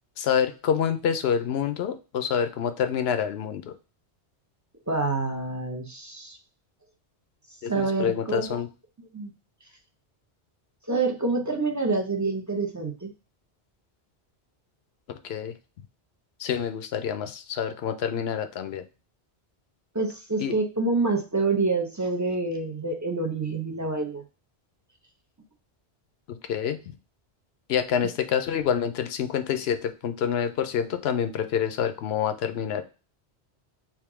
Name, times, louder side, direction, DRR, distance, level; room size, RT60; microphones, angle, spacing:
voice 1, 0.2-3.7 7.6-8.7 15.2-15.5 16.4-18.8 20.4-20.5 26.3-26.9 27.7-32.8, left 8 dB, 70° left, 9 dB, 0.8 m, -27 dB
voice 2, 4.9-6.4 7.7-8.6 9.1-9.3 10.9-13.1 19.9-24.2 28.0-28.1, right 3 dB, 20° right, 2 dB, 0.5 m, -27 dB
3.6 x 2.6 x 4.7 m, 0.33 s
omnidirectional pair, 1.1 m